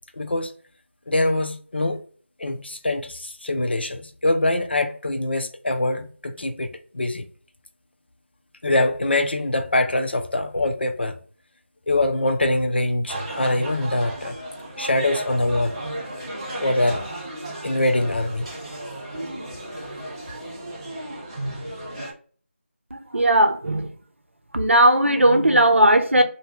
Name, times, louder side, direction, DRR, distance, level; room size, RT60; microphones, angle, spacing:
voice 1, 0.2-0.5 1.1-2.0 2.4-6.7 6.9-7.2 8.6-11.1 11.9-14.3 14.8-15.7 16.6-17.0 17.6-18.5, left 2 dB, 55° left, 0.5 m, -23 dB
sound 1, 13.1-22.1, right 1 dB, 20° right, 0.7 m, -34 dB
voice 2, 22.9-23.9 24.5-26.2, right 1 dB, 70° right, 0.7 m, -17 dB
2.6 x 2.2 x 3.7 m
figure-of-eight pair, 165°, 7 cm